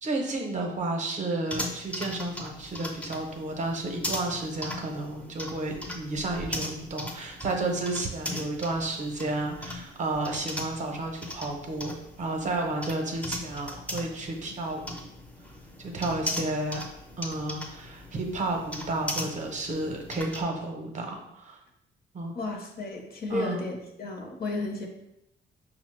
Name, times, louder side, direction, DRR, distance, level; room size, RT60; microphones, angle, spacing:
voice 1, 0.0-15.1 15.8-16.8 17.2-21.6 22.1-22.4 23.3-23.6, right 2 dB, 35° right, 1 dB, 0.6 m, -32 dB
sound 1, 1.5-20.4, left 1 dB, 5° left, 0.5 m, -39 dB
voice 2, 22.3-24.9, left 2 dB, 50° left, 2 dB, 0.7 m, -33 dB
5.5 x 2.0 x 3.1 m, 0.84 s
cardioid pair, 130°, 20 cm